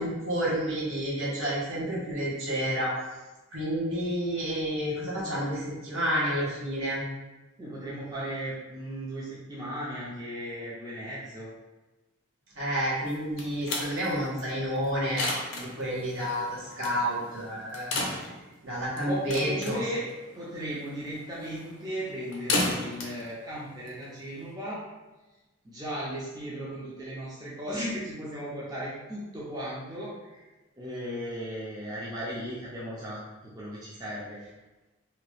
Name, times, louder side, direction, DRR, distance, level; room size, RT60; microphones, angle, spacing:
voice 1, 0.0-2.9 3.5-7.0 12.5-15.3 15.5-18.0 18.2-18.3 18.6-19.8, equal, 70° right, -6 dB, 1.1 m, -30 dB
voice 2, 7.6-11.5 19.1-20.1 20.3-24.8 25.6-30.4 30.8-33.2 33.5-34.4, equal, 20° right, -7 dB, 0.5 m, -36 dB
sound 1, 13.1-24.5, left 2 dB, 60° left, 0.6 m, -35 dB
2.8 x 2.3 x 3.1 m, 1.1 s
head